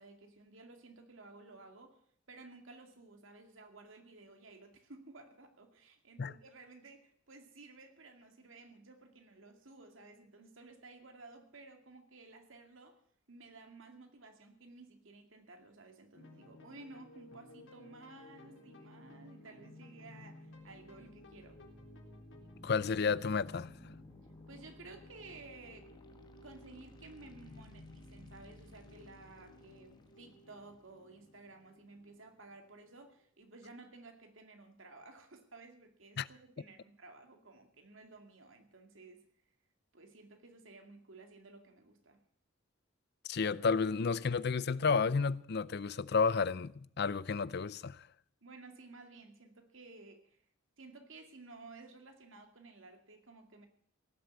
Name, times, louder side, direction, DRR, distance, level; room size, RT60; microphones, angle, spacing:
voice 1, 0.0-2.0 2.3-13.0 13.3-21.6 24.5-25.9 26.4-39.2 39.9-42.2 48.4-50.4 50.8-53.7, right 3 dB, 85° right, 2.3 m, -55 dB
sound 1, 16.1-33.1, left 2 dB, 70° left, 4.0 m, -57 dB
sound 2, 20.5-32.5, left 1 dB, 20° left, 1.4 m, -59 dB
voice 2, 22.6-23.7 36.2-36.3 43.2-48.1, left 5 dB, 55° left, 0.5 m, -31 dB
17.5 x 7.6 x 8.3 m
head